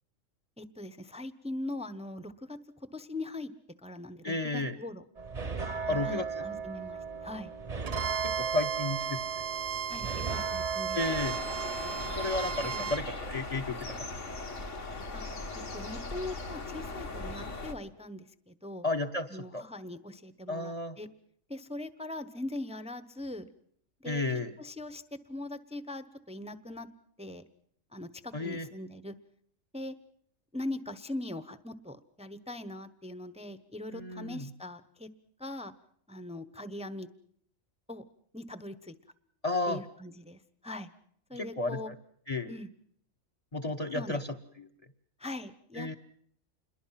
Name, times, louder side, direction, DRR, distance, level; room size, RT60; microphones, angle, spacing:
voice 1, 0.6-2.6 2.9-3.5 3.8-5.0 5.8-7.5 9.9-11.0 12.7-13.0 15.1-15.2 15.7-18.9 19.3-21.1 21.5-23.5 24.0-24.2 24.6-26.9 27.2-27.4 27.9-29.2 29.7-29.9 30.5-35.1 35.4-35.7 36.1-37.1 37.9-38.0 38.3-38.9 39.7-40.9 41.3-41.9 42.5-42.7 43.9-44.2 45.2-45.9, left 1 dB, 5° right, 12 dB, 0.9 m, -41 dB
voice 2, 4.2-4.7 5.9-6.4 8.2-9.2 10.9-11.4 12.1-14.1 18.8-19.6 20.5-21.0 24.0-24.5 28.3-28.7 33.9-34.5 39.4-39.8 41.4-41.8 42.3-42.5 43.5-44.3 44.6-44.7 45.7-45.9, left 2 dB, 30° left, 9 dB, 1.1 m, -32 dB
sound 1, 5.2-12.8, right 5 dB, 30° right, 1.0 m, -37 dB
Bowed string instrument, 7.9-13.0, right 8 dB, 65° right, 1.5 m, -36 dB
sound 2, 11.0-17.7, left 2 dB, 65° left, 2.5 m, -39 dB
28.0 x 22.0 x 5.9 m, 0.66 s
omnidirectional pair, 1.4 m